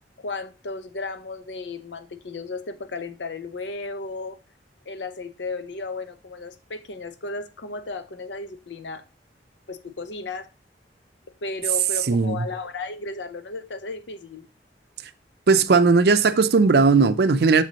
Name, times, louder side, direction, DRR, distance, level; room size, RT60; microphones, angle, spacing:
voice 1, 0.2-4.4 4.9-9.0 9.7-10.5 11.4-14.4, left 3 dB, 85° left, 0.7 m, -34 dB
voice 2, 12.1-12.4 15.5-17.6, right 4 dB, 60° right, 0.5 m, -17 dB
6.9 x 6.0 x 2.8 m
head